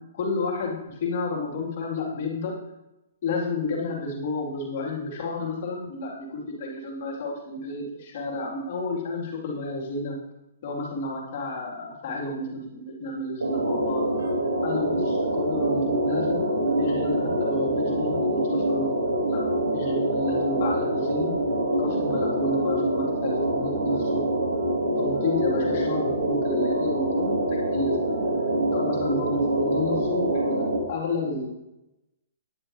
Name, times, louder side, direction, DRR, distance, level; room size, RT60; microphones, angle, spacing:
voice 1, 0.1-2.5 3.2-10.2 10.6-14.0 14.6-19.4 19.7-21.3 21.8-24.2 25.0-28.0 28.7-31.5, left 2 dB, 50° left, -3 dB, 3.9 m, -31 dB
sound 1, 13.4-30.8, right 1 dB, 90° right, 5.2 m, -25 dB
15.5 x 10.5 x 3.4 m, 0.92 s
hypercardioid pair, 130°, 0 cm